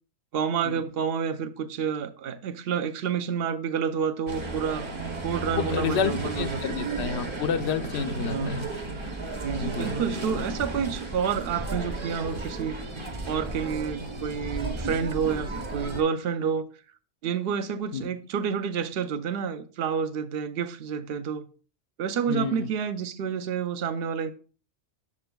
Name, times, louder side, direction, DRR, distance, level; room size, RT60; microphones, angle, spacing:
voice 1, 0.3-4.9 5.2-6.8 8.2-8.7 9.4-12.8 13.3-16.7 17.2-21.5 22.0-24.3, right 7 dB, 65° right, 0.8 m, -29 dB
sound 1, 4.3-16.0, right 2 dB, 30° right, 0.8 m, -34 dB
voice 2, 5.6-8.7 9.6-9.9 17.9-18.1 22.3-22.7, left 7 dB, 75° left, 0.9 m, -29 dB
8.6 x 6.8 x 2.2 m
omnidirectional pair, 1.2 m